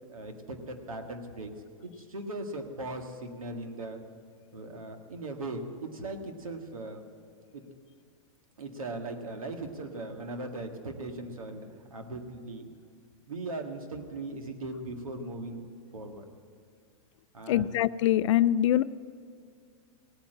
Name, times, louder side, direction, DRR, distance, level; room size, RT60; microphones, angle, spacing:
voice 1, 0.1-1.5 1.8-4.0 4.5-7.0 7.5-7.6 8.6-12.7 13.3-15.6 15.9-16.3 17.3-17.8, right 2 dB, 85° right, 5 dB, 1.7 m, -39 dB
voice 2, 17.5-18.8, left 12 dB, 60° left, 17 dB, 0.4 m, -24 dB
17.5 x 8.8 x 7.7 m, 2.3 s
hypercardioid pair, 105°, 17 cm